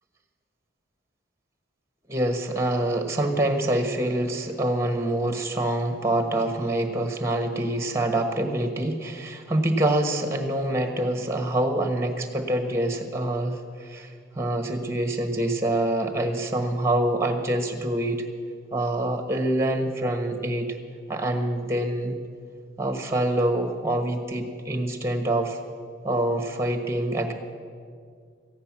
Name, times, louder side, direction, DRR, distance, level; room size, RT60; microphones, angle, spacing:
voice 1, 2.1-18.2 18.7-20.8 21.1-22.2 22.8-25.6 26.0-27.3, right 1 dB, 15° right, 6 dB, 1.2 m, -26 dB
14.5 x 9.8 x 7.3 m, 2.2 s
head